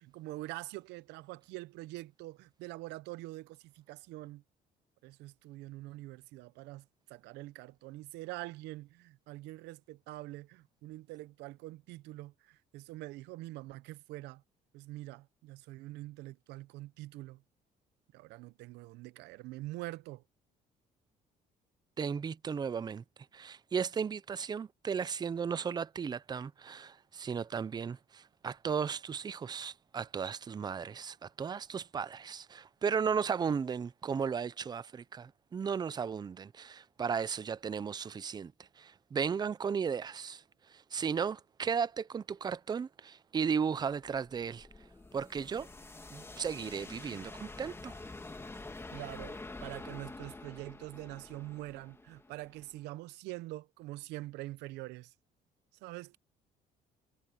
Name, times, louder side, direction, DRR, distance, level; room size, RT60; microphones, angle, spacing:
voice 1, 0.0-4.4 5.0-14.4 14.7-17.4 18.1-20.2 48.9-55.1 55.8-56.2, right 18 dB, 90° right, 0.7 m, -45 dB
voice 2, 22.0-23.0 23.3-38.5 38.8-40.4 40.7-44.7 45.1-45.7 46.1-47.9, right 6 dB, 25° right, 0.5 m, -35 dB
sound 1, 44.0-52.8, left 2 dB, 15° left, 2.0 m, -48 dB
cardioid pair, 110°, 17 cm